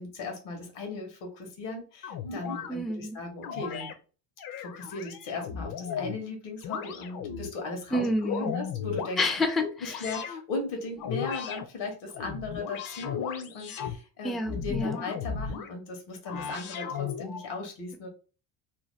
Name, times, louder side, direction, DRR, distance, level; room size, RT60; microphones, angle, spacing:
voice 1, 0.0-3.9 4.6-9.2 9.6-18.1, left 3 dB, 80° left, 1.3 m, -37 dB
sound 1, 2.0-2.7 3.4-3.9 4.4-6.2 6.6-7.5 8.0-9.2 9.8-10.4 11.0-11.6 12.1-14.0 14.5-15.7 16.2-17.5, left 7 dB, 55° left, 0.6 m, -35 dB
voice 2, 2.7-3.2 7.9-8.5 9.2-9.6 14.2-15.0, left 1 dB, ahead, 0.3 m, -28 dB
2.9 x 2.2 x 3.1 m
supercardioid pair, 90°, 43 cm